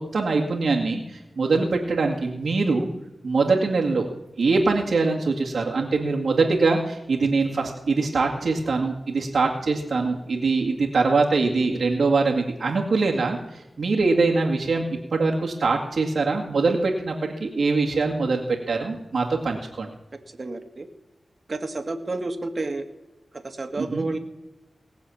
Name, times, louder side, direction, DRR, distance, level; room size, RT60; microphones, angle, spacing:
voice 1, 0.1-2.9 3.2-4.1 4.4-14.8 15.1-19.9 23.8-24.1, right 3 dB, 80° right, -2 dB, 2.1 m, -23 dB
voice 2, 20.4-20.9 21.5-22.9 23.4-24.2, right 2 dB, 55° right, 7 dB, 1.9 m, -30 dB
19.5 x 7.3 x 7.2 m, 0.97 s
cardioid pair, 45°, 0 cm